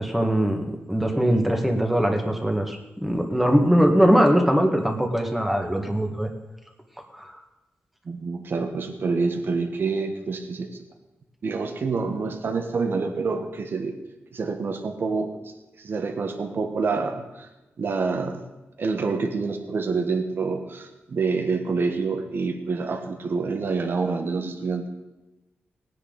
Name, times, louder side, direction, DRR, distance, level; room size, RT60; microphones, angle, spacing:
voice 1, 0.0-6.3 7.2-7.3, equal, 5° right, 3 dB, 1.8 m, -21 dB
voice 2, 8.0-10.8 11.4-13.9 14.3-17.5 17.8-18.4 18.8-24.9, right 4 dB, 55° right, 6 dB, 1.4 m, -27 dB
18.0 x 10.0 x 4.1 m, 1.1 s
wide cardioid pair, 110°, 4 cm